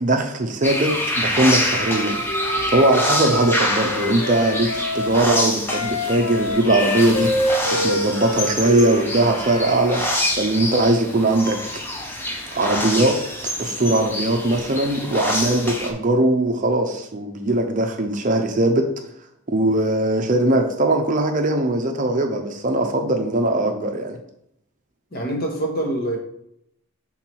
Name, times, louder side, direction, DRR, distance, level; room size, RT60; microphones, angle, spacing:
voice 1, 0.0-2.2 2.7-7.3 7.8-10.0 10.4-11.6 12.5-13.2 13.6-18.9 19.5-24.2, right 1 dB, 35° right, 4 dB, 0.6 m, -20 dB
sound 1, 0.6-15.9, left 1 dB, 10° left, 0.6 m, -26 dB
Wind instrument woodwind instrument, 1.8-9.8, left 1 dB, 60° left, 0.7 m, -27 dB
voice 2, 25.1-26.2, right 1 dB, 45° left, 0 dB, 1.3 m, -25 dB
5.8 x 3.9 x 4.5 m, 0.75 s
head